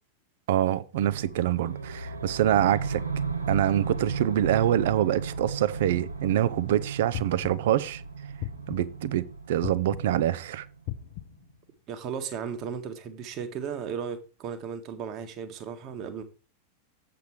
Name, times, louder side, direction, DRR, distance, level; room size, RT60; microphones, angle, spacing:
voice 1, 0.5-3.0 3.5-8.0 8.7-10.7, right 12 dB, 55° right, 0.6 m, -25 dB
sound 1, 1.1-11.1, right 5 dB, 80° right, 1.0 m, -35 dB
sound 2, 7.1-7.8 8.4-9.1 9.6-10.3 10.9-11.5, left 13 dB, 45° left, 0.7 m, -38 dB
voice 2, 11.9-16.2, right 7 dB, 35° right, 1.5 m, -35 dB
8.0 x 6.9 x 4.6 m
figure-of-eight pair, 90°, 0 cm